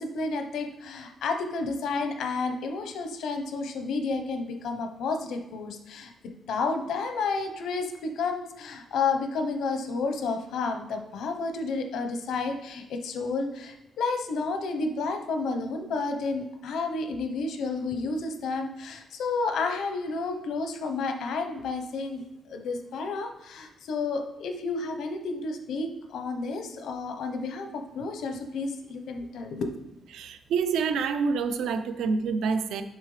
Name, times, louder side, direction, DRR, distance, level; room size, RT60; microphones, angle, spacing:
voice 1, 0.0-6.1 6.5-29.7, left 4 dB, 80° left, 6 dB, 1.0 m, -31 dB
voice 2, 30.1-32.8, right 5 dB, 85° right, 9 dB, 0.6 m, -27 dB
7.4 x 5.7 x 3.3 m, 0.96 s
cardioid pair, 135°, 0 cm